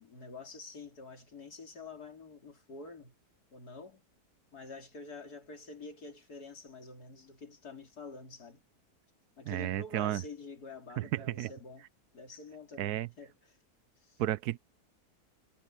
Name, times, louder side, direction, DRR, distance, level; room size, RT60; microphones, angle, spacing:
voice 1, 0.0-3.2 3.5-4.0 4.5-8.6 9.4-11.8 12.1-13.6 14.0-14.2, left 3 dB, 85° left, 3.8 m, -48 dB
voice 2, 9.5-10.2 11.0-11.5 12.8-13.1 14.2-14.6, right 13 dB, 90° right, 1.2 m, -32 dB
omnidirectional pair, 1.6 m